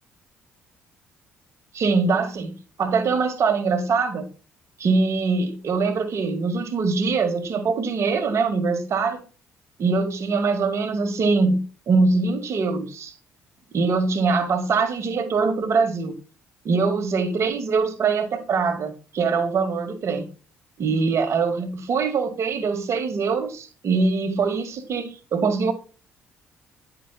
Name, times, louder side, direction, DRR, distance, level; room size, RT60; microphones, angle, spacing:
voice 1, 1.7-4.3 4.8-9.2 9.8-13.1 13.7-16.1 16.6-20.3 20.8-25.7, right 4 dB, 45° right, 1.4 m, -23 dB
9.9 x 5.9 x 2.3 m
figure-of-eight pair, 45°, 7 cm